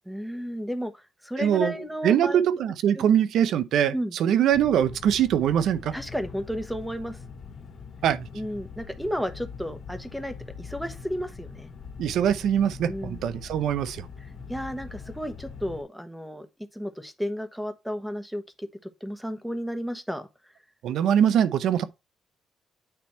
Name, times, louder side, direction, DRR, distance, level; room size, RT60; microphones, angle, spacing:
voice 1, 0.0-2.4 2.9-3.1 3.9-4.2 5.9-7.2 8.3-11.7 12.9-13.2 14.2-16.5 16.7-18.7 19.0-20.3, equal, ahead, 1.2 m, -33 dB
voice 2, 1.4-1.7 2.0-5.9 8.0-8.3 12.0-14.1 20.8-21.8, right 9 dB, 75° right, 0.7 m, -22 dB
sound 1, 4.5-15.8, left 5 dB, 65° left, 2.1 m, -42 dB
8.9 x 3.4 x 4.4 m
cardioid pair, 90°, 0 cm